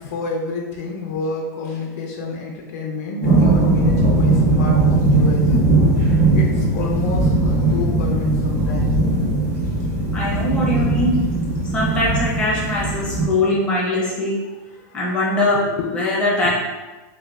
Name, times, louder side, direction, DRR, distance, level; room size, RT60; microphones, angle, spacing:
voice 1, 0.0-5.7 6.3-9.0 14.1-14.2 14.7-15.0 15.8-15.9, left 4 dB, 55° left, -1 dB, 0.4 m, -29 dB
sound 1, 3.2-13.3, right 2 dB, 70° right, 1.2 m, -18 dB
voice 2, 10.1-11.1 11.7-14.4 14.9-15.6 15.9-16.5, left 2 dB, 10° left, -6 dB, 0.6 m, -21 dB
3.0 x 2.2 x 2.2 m, 1.2 s
supercardioid pair, 165°, 10 cm